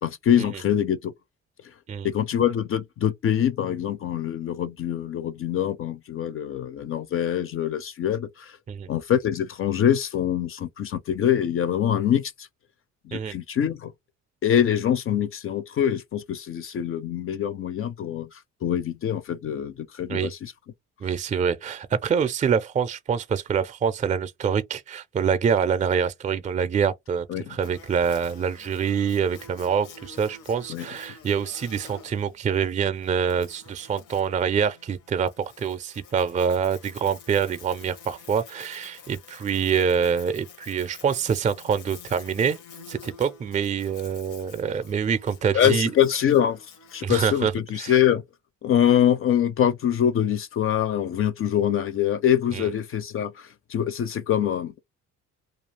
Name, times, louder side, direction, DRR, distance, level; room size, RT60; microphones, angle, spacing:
voice 1, 0.0-1.1 2.0-8.6 8.9-12.5 13.0-13.9 14.4-20.5 27.3-27.6 30.7-30.9 45.5-46.6 46.9-48.2 48.6-54.8, left 10 dB, 45° left, 0.4 m, -24 dB
voice 2, 21.0-42.6 42.9-45.9 47.0-47.5 47.8-48.0 52.5-52.7, right 7 dB, 25° right, 0.4 m, -25 dB
Buzz, 27.6-47.4, left 5 dB, 85° left, 0.8 m, -48 dB
2.4 x 2.3 x 3.2 m
cardioid pair, 90°, 30 cm